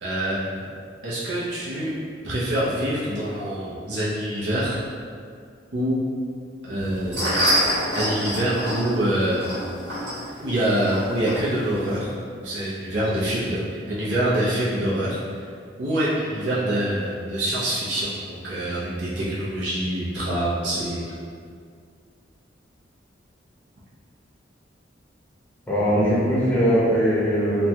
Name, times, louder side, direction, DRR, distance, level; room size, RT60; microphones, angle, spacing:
voice 1, 0.0-0.4 1.0-1.9 2.2-4.8 5.7-6.0 6.6-7.3 7.9-9.5 10.4-15.2 15.8-21.0, right 1 dB, 70° right, -8 dB, 0.6 m, -25 dB
sound 1, 6.8-12.0, equal, 85° right, 1.2 m, -27 dB
voice 2, 25.7-27.7, equal, 10° left, -8 dB, 0.6 m, -20 dB
3.0 x 2.2 x 2.7 m, 2.1 s
head